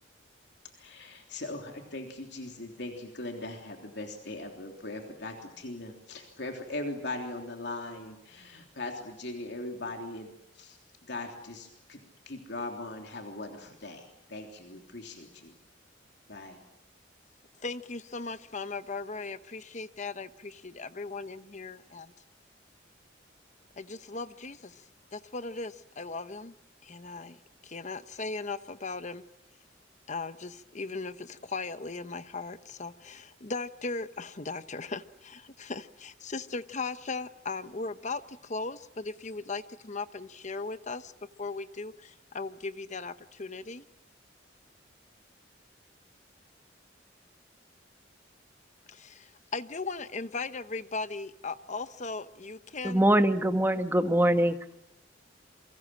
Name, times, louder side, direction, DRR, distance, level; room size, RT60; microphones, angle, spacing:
voice 1, 0.8-10.8 11.1-12.0 12.3-15.5 16.3-16.6, left 2 dB, 65° left, 3 dB, 3.3 m, -40 dB
voice 2, 17.6-22.1 23.8-24.8 25.1-26.5 26.8-27.4 27.6-29.2 30.1-41.1 41.4-43.9 48.9-53.0, left 3 dB, 40° left, 12 dB, 0.9 m, -38 dB
voice 3, 52.8-54.5, right 1 dB, 10° right, 8 dB, 1.4 m, -23 dB
28.5 x 24.5 x 7.5 m, 0.82 s
head